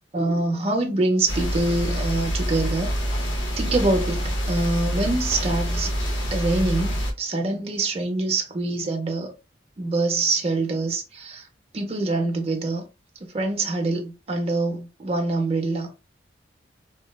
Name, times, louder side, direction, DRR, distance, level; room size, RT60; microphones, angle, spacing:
voice 1, 0.1-2.9 3.6-5.9 6.3-9.3 9.8-11.5 11.7-12.9 13.3-15.9, right 2 dB, 35° right, 0.5 m, -25 dB
sound 1, 1.3-7.1, equal, 85° left, 0.6 m, -26 dB
2.8 x 2.1 x 2.2 m
head